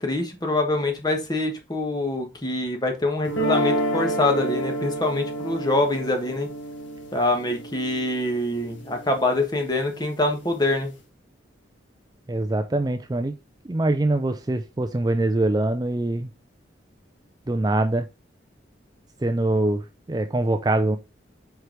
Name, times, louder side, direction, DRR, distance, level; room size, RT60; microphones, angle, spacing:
voice 1, 0.0-6.5 7.1-10.9, left 2 dB, 20° left, 3 dB, 1.3 m, -25 dB
sound 1, 3.3-9.4, right 1 dB, 80° left, 1.9 m, -29 dB
voice 2, 12.3-13.3 13.7-16.3 17.5-18.1 19.2-19.8 20.1-21.0, right 2 dB, 20° right, 7 dB, 0.4 m, -23 dB
4.9 x 4.6 x 4.8 m, 0.27 s
head